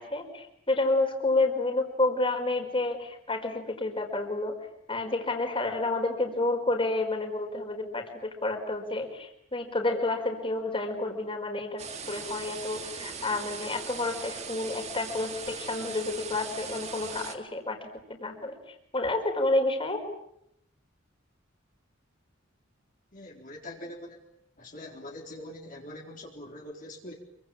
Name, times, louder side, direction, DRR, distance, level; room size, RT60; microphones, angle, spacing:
voice 1, 0.0-4.6 4.9-18.6 18.9-20.0, left 2 dB, 25° left, 4 dB, 4.8 m, -30 dB
sound 1, 11.8-17.4, right 5 dB, 35° right, 3.0 m, -39 dB
voice 2, 23.1-24.2 24.6-27.1, left 1 dB, 45° left, -1 dB, 4.1 m, -43 dB
27.5 x 24.5 x 8.8 m, 0.77 s
head